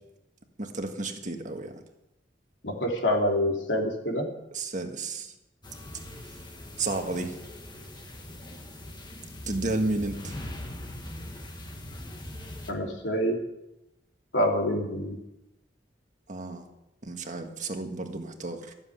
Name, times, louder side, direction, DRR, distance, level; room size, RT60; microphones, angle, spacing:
voice 1, 0.6-1.8 4.5-5.3 6.8-7.4 9.4-10.3 16.3-16.6 17.0-18.7, right 2 dB, 45° right, 4 dB, 1.6 m, -32 dB
voice 2, 2.6-4.3 12.7-13.4 14.3-15.2, equal, 85° left, 1 dB, 3.1 m, -26 dB
sound 1, 5.6-12.7, left 1 dB, 25° left, 1.5 m, -41 dB
14.0 x 7.5 x 9.7 m, 0.91 s
head